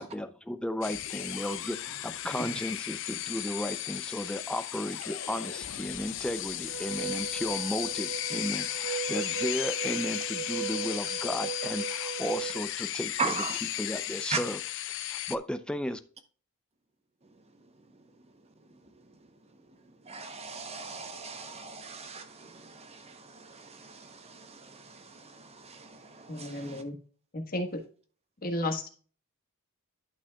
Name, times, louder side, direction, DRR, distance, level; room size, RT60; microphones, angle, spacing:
voice 1, 0.0-13.3 13.8-14.6 15.1-16.0, left 1 dB, 5° left, 0.4 m, -34 dB
sound 1, 0.8-15.4, left 13 dB, 55° left, 0.5 m, -35 dB
sound 2, 6.7-12.7, right 8 dB, 65° right, 0.8 m, -38 dB
voice 2, 13.2-13.6 14.3-14.4 20.0-26.8, right 5 dB, 30° right, 0.8 m, -38 dB
voice 3, 26.3-27.0 27.3-27.8 28.4-28.9, left 1 dB, 40° left, 1.4 m, -33 dB
11.0 x 6.1 x 2.3 m
head